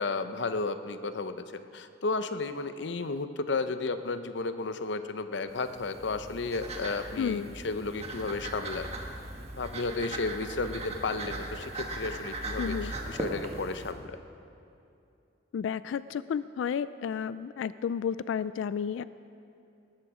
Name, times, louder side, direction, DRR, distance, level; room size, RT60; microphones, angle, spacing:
voice 1, 0.0-8.9 9.6-14.2, left 3 dB, 65° left, 10 dB, 0.7 m, -33 dB
sound 1, 5.5-13.9, right 2 dB, 35° right, 1.5 m, -39 dB
voice 2, 7.2-7.5 12.6-12.9 15.5-19.0, left 7 dB, 85° left, 15 dB, 0.3 m, -32 dB
19.0 x 13.0 x 4.9 m, 2.6 s
head